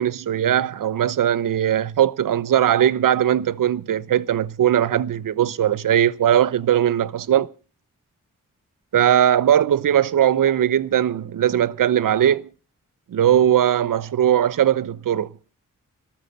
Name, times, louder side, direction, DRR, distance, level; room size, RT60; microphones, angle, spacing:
voice 1, 0.0-7.5 8.9-12.5 13.1-15.3, right 10 dB, 75° right, 0.8 m, -19 dB
13.5 x 12.5 x 6.6 m
cardioid pair, 55°, 33 cm